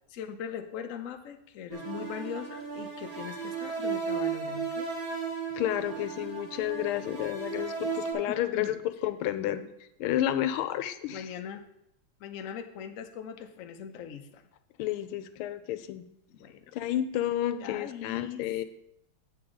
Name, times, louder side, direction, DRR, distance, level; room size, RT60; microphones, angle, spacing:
voice 1, 0.1-4.9 8.3-8.8 11.1-11.6 12.2-14.4 16.3-16.7 17.6-18.4, left 8 dB, 70° left, 6 dB, 0.7 m, -40 dB
sound 1, 1.7-8.1, right 5 dB, 65° right, 2.4 m, -35 dB
voice 2, 5.5-9.7 10.0-11.2 14.8-16.0 16.7-18.6, left 12 dB, 90° left, 11 dB, 1.5 m, -31 dB
8.2 x 7.8 x 3.7 m, 0.81 s
omnidirectional pair, 2.3 m